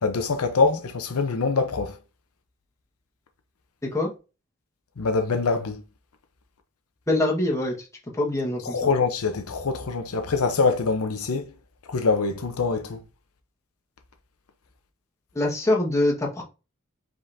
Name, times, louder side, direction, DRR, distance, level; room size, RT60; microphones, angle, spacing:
voice 1, 0.0-2.0 5.0-5.8 8.7-11.4 11.9-13.0, left 4 dB, 85° left, 0.7 m, -24 dB
voice 2, 7.1-7.9 8.1-8.9 15.3-16.4, left 1 dB, 15° left, 1.3 m, -24 dB
5.1 x 3.7 x 2.6 m
head